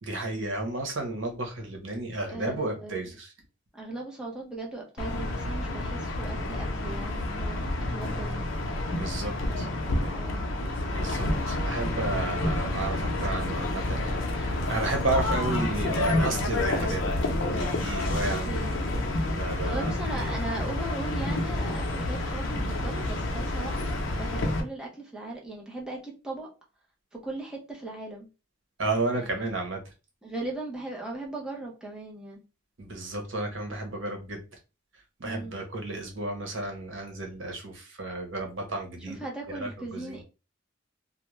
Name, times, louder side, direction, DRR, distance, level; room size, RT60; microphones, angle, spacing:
voice 1, 0.0-3.3 8.9-9.7 10.8-17.0 17.4-18.5 19.3-20.7 28.8-29.8 32.8-34.4 35.2-39.2 39.5-40.2, right 2 dB, 85° right, 3 dB, 0.9 m, -33 dB
voice 2, 2.2-3.0 3.7-8.5 9.5-10.5 18.5-18.8 19.6-26.5 27.1-28.3 29.1-29.4 30.2-32.4 35.2-35.6 39.0-40.2, right 2 dB, 5° right, -2 dB, 0.6 m, -38 dB
sound 1, 5.0-24.6, left 1 dB, 85° left, 0.6 m, -29 dB
2.4 x 2.1 x 3.1 m, 0.30 s
head